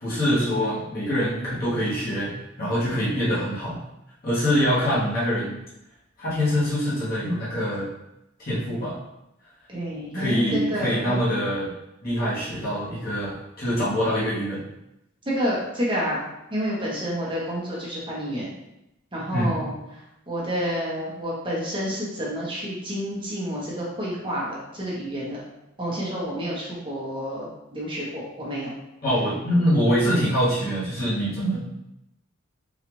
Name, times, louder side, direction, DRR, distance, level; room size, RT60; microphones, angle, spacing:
voice 1, 0.0-2.3 2.6-3.8 4.2-5.6 6.2-7.9 8.4-9.0 10.1-11.7 12.0-14.6 19.3-19.5 29.0-31.7, equal, 45° left, -9 dB, 1.2 m, -24 dB
voice 2, 9.7-11.2 15.3-16.2 16.5-18.5 19.1-19.7 20.3-25.4 25.8-28.7, equal, 25° right, -6 dB, 0.9 m, -29 dB
3.8 x 2.4 x 3.0 m, 0.88 s
head